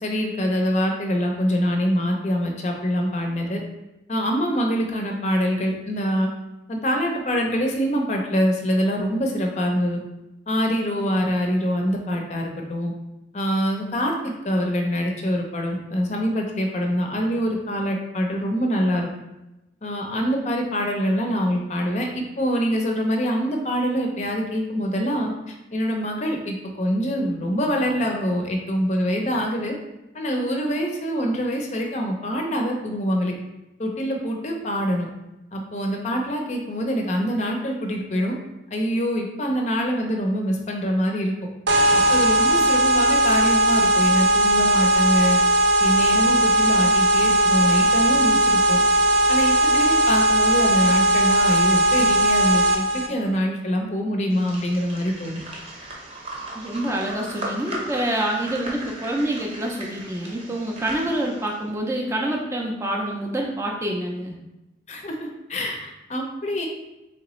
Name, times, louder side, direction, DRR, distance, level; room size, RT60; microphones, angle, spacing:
voice 1, 0.0-3.6 4.1-6.3 6.7-10.0 10.5-12.9 13.3-19.1 19.8-29.7 30.1-33.3 33.8-35.1 35.5-38.3 38.7-41.3 41.9-45.4 45.8-48.8 49.3-55.4 64.9-66.7, equal, 40° left, 2 dB, 0.5 m, -25 dB
sound 1, 41.7-53.1, right 1 dB, 75° right, 0.6 m, -18 dB
sound 2, 54.3-61.6, right 1 dB, 35° right, 0.8 m, -37 dB
voice 2, 56.5-64.4, right 1 dB, 15° right, -1 dB, 0.4 m, -27 dB
3.8 x 3.3 x 3.0 m, 0.96 s
head